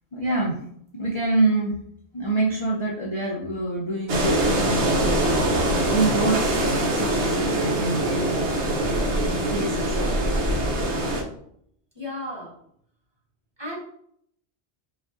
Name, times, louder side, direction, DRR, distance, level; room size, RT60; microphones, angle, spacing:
voice 1, 0.1-0.6 0.9-1.8 2.1-5.2 5.9-8.5 9.3-9.9, right 2 dB, 40° left, -3 dB, 0.4 m, -26 dB
sound 1, 4.1-11.2, right 1 dB, 75° right, 1.0 m, -23 dB
voice 2, 12.0-12.5 13.6-13.8, left 1 dB, 25° right, -4 dB, 0.9 m, -33 dB
5.0 x 2.5 x 2.5 m, 0.68 s
omnidirectional pair, 1.2 m